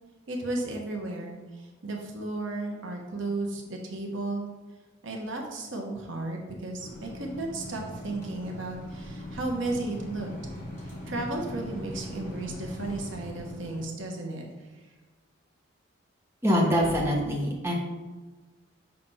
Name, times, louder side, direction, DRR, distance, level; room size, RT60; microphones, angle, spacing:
voice 1, 0.3-4.5 5.0-10.3 10.8-14.7, right 2 dB, 75° right, 1 dB, 1.0 m, -34 dB
sound 1, 6.8-13.8, left 1 dB, 15° left, 2.0 m, -40 dB
voice 2, 16.4-17.7, equal, 15° right, -3 dB, 0.9 m, -24 dB
5.8 x 3.3 x 5.4 m, 1.3 s
head